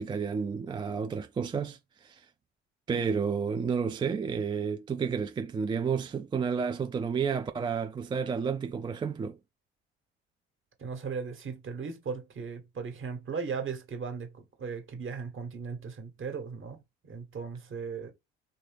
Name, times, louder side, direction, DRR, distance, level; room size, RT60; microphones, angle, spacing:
voice 1, 0.0-2.3 2.9-9.4, right 6 dB, 15° right, 0.3 m, -31 dB
voice 2, 10.8-16.8 17.0-18.1, right 5 dB, 40° right, 1.3 m, -37 dB
3.4 x 2.6 x 3.3 m
hypercardioid pair, 55°, 31 cm